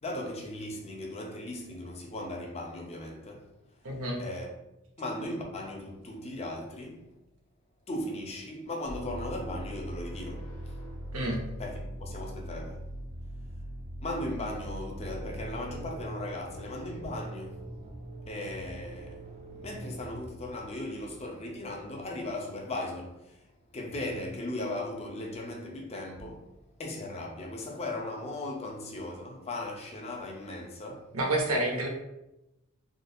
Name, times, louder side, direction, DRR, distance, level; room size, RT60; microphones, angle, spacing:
voice 1, 0.0-3.5 4.2-4.5 5.0-7.1 7.9-10.8 11.6-12.9 14.0-17.7 18.3-19.2 19.5-23.4 23.7-26.5 26.8-31.1, left 1 dB, 30° left, 0.5 m, -37 dB
voice 2, 3.8-4.2 11.1-11.4 31.1-31.9, right 1 dB, 75° right, 0.7 m, -28 dB
sound 1, 8.8-16.3, equal, 75° left, 0.9 m, -41 dB
sound 2, 15.0-21.6 23.8-24.2, right 2 dB, 30° right, 0.4 m, -44 dB
3.7 x 2.3 x 2.6 m
head